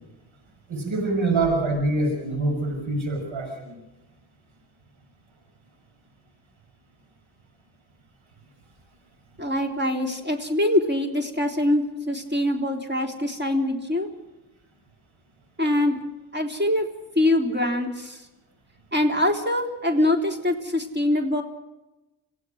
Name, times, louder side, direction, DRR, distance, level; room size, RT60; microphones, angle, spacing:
voice 1, 0.7-3.8, right 2 dB, 75° right, 3 dB, 5.7 m, -25 dB
voice 2, 9.4-14.1 15.6-16.0 16.3-16.9 17.2-18.3 18.9-21.4, left 1 dB, 20° right, 3 dB, 3.7 m, -24 dB
26.0 x 16.0 x 6.4 m, 1.0 s
cardioid pair, 55°, 48 cm